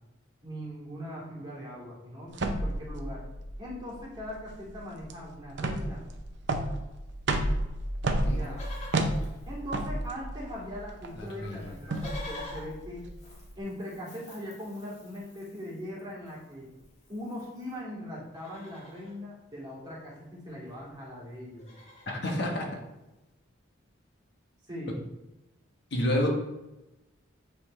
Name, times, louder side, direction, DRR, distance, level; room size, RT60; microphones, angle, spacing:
voice 1, 0.4-3.2 3.6-6.0 8.3-8.6 9.5-13.1 13.6-16.7 17.1-21.6 24.7-25.0, equal, 20° right, -6 dB, 2.3 m, -40 dB
sound 1, 2.3-13.6, right 1 dB, 60° right, 0.7 m, -32 dB
Livestock farm animals working animals, 8.3-10.3 10.5-10.6 10.9-17.8 18.2-19.2 20.4-20.5 20.7-20.9 21.3-22.2 22.9-23.0, left 2 dB, 35° left, 1.7 m, -49 dB
voice 2, 11.2-11.7 22.1-22.8 25.9-26.3, left 1 dB, 60° left, 0 dB, 1.2 m, -29 dB
8.6 x 4.5 x 3.2 m, 0.99 s
head